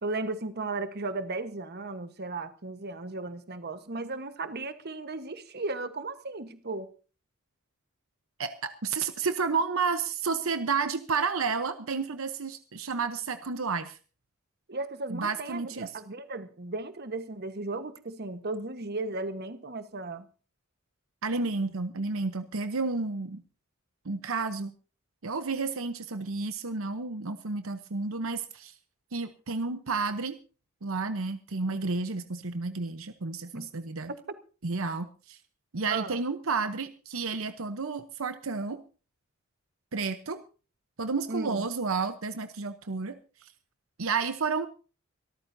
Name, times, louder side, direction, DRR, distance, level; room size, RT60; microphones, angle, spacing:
voice 1, 0.0-6.9 14.7-20.3 33.5-33.7 34.1-34.4 35.9-36.2 41.3-41.7, right 3 dB, 50° right, 1.3 m, -35 dB
voice 2, 8.4-14.0 15.1-15.9 21.2-23.4 24.0-24.7 25.2-28.7 29.1-30.4 30.8-34.1 34.6-35.4 35.7-38.8 39.9-40.4 41.0-43.5 44.0-44.7, right 4 dB, 75° right, 0.9 m, -31 dB
25.0 x 13.5 x 2.7 m
head